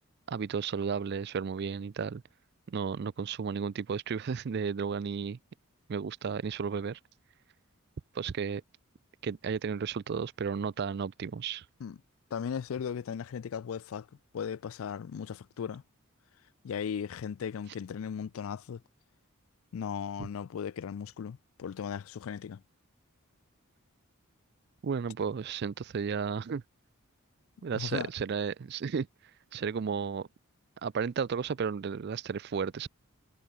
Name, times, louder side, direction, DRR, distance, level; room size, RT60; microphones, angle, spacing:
voice 1, 0.3-2.2 2.7-5.4 5.9-7.0 8.1-8.6 9.2-11.6 20.2-20.3 24.8-26.6 27.6-29.1 29.5-30.3 30.8-32.9, right 6 dB, 50° right, 0.4 m, -33 dB
voice 2, 12.3-14.1 14.3-15.8 16.6-18.8 19.7-22.6 27.7-28.1, left 7 dB, 70° left, 0.4 m, -37 dB
head